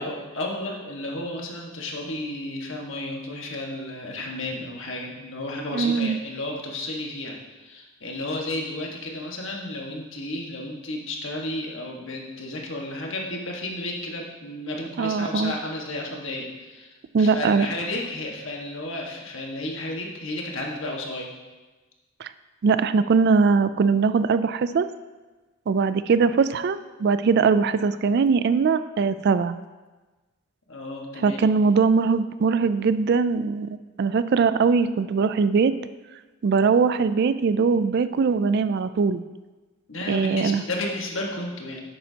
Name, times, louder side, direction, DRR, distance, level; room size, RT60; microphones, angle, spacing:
voice 1, 0.0-7.4 7.6-16.9 17.2-21.3 30.7-31.5 39.9-41.8, left 1 dB, 60° left, -1 dB, 1.5 m, -32 dB
voice 2, 5.7-6.2 15.0-15.5 17.1-17.7 22.2-22.3 22.6-24.9 25.7-29.6 31.2-35.7 36.4-39.2 40.1-40.6, right 5 dB, 50° right, 13 dB, 0.3 m, -21 dB
11.0 x 8.5 x 2.8 m, 1.2 s
head